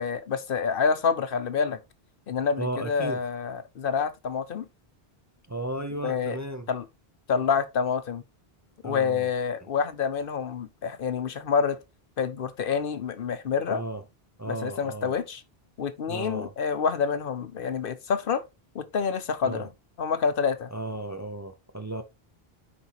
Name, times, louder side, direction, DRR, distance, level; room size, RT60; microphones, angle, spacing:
voice 1, 0.0-1.8 2.3-4.7 6.0-6.4 6.7-6.8 7.3-8.2 8.8-11.8 12.2-13.8 14.5-15.4 15.8-18.4 18.7-19.7 20.0-20.7, left 6 dB, 65° left, 0.9 m, -27 dB
voice 2, 2.6-3.2 5.5-6.7 8.8-9.3 13.7-14.0 14.4-15.1 16.1-16.5 19.4-19.7 20.7-22.0, right 1 dB, 20° right, 0.5 m, -34 dB
9.5 x 4.2 x 2.9 m
omnidirectional pair, 1.0 m